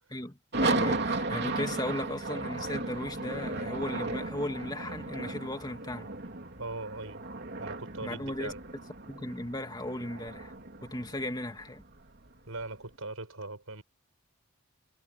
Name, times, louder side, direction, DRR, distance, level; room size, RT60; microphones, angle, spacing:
voice 1, 0.1-6.1 8.0-8.5 9.1-10.5 10.8-11.8, left 1 dB, 20° left, 2.6 m, -36 dB
sound 1, 0.5-12.7, right 2 dB, 50° right, 3.5 m, -35 dB
voice 2, 6.6-7.2 7.6-8.6 12.5-13.8, right 2 dB, 85° right, 5.5 m, -40 dB
head